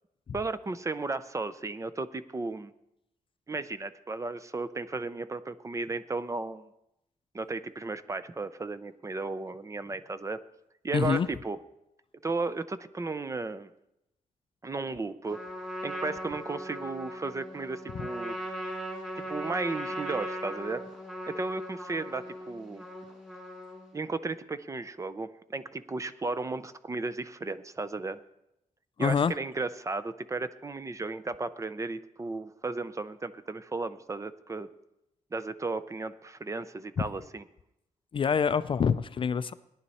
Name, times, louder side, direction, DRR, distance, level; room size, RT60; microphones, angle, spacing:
voice 1, 0.3-2.7 3.5-6.7 7.3-10.4 10.8-11.6 12.2-13.7 14.6-15.4 15.8-18.6 19.2-20.8 21.3-22.8 23.9-28.2 29.0-34.7 35.3-37.4, right 3 dB, 20° right, 13 dB, 0.5 m, -34 dB
voice 2, 10.9-11.3 29.0-29.3 38.1-39.5, left 6 dB, 40° left, 14 dB, 0.4 m, -26 dB
Trumpet, 15.3-24.0, equal, 5° right, 2.9 m, -39 dB
18.0 x 11.0 x 4.2 m, 0.86 s
wide cardioid pair, 145°, 14 cm